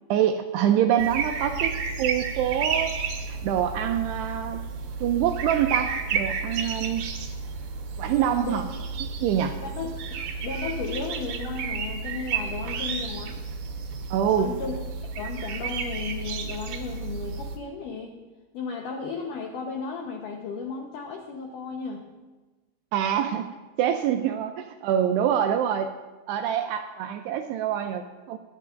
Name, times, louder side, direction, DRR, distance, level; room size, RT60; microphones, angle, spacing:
voice 1, 0.1-3.0 3.2-4.6 5.0-7.0 8.0-8.7 9.2-9.6 12.6-12.7 14.1-14.6 22.9-23.5 23.8-25.9 26.3-28.4, right 10 dB, 85° right, 6 dB, 2.4 m, -25 dB
sound 1, 1.0-17.6, right 5 dB, 65° right, 2.4 m, -32 dB
voice 2, 9.6-13.4 14.3-14.8 15.2-18.2 18.5-22.0, left 5 dB, 80° left, 1 dB, 1.9 m, -34 dB
24.0 x 11.5 x 2.5 m, 1.2 s
omnidirectional pair, 5.3 m